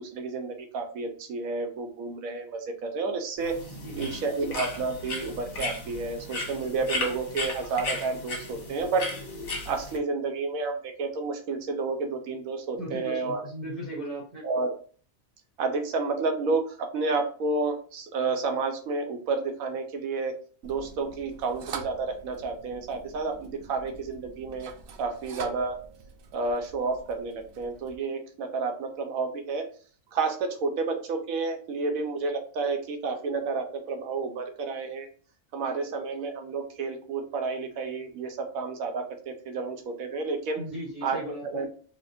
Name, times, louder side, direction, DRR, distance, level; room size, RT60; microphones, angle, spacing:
voice 1, 0.0-3.6 4.0-9.1 9.7-13.4 14.4-14.8 15.6-20.4 20.6-24.7 25.0-25.8 26.3-29.7 30.1-35.1 35.5-40.6 41.0-41.7, right 4 dB, 80° right, 5 dB, 1.1 m, -30 dB
sound 1, 3.4-10.0, left 2 dB, 80° left, 1.4 m, -35 dB
voice 2, 3.8-4.2 12.8-14.4 40.6-41.6, right 1 dB, 30° right, -5 dB, 0.9 m, -37 dB
sound 2, 20.6-28.0, right 6 dB, 65° right, 0.5 m, -44 dB
4.1 x 2.2 x 2.5 m, 0.42 s
omnidirectional pair, 1.4 m